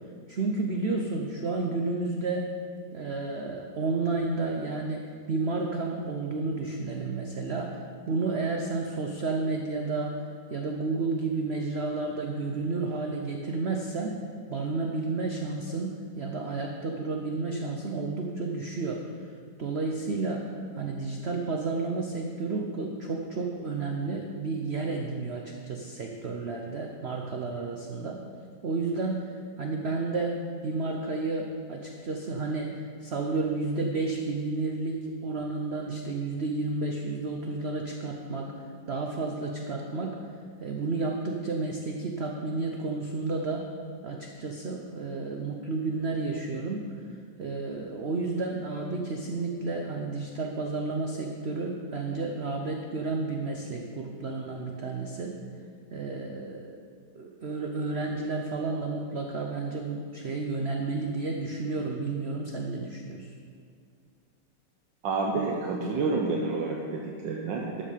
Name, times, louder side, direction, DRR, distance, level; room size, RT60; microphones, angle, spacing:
voice 1, 0.3-2.5 2.9-10.2 10.5-14.2 14.5-19.0 19.6-20.5 20.7-28.2 28.6-38.5 38.9-40.2 40.6-43.7 44.0-46.9 47.4-55.4 55.9-56.8 57.1-63.3, right 3 dB, 50° right, 1 dB, 0.8 m, -31 dB
voice 2, 65.0-67.8, right 3 dB, 90° right, -1 dB, 1.6 m, -29 dB
12.5 x 5.5 x 6.7 m, 2.2 s
omnidirectional pair, 1.9 m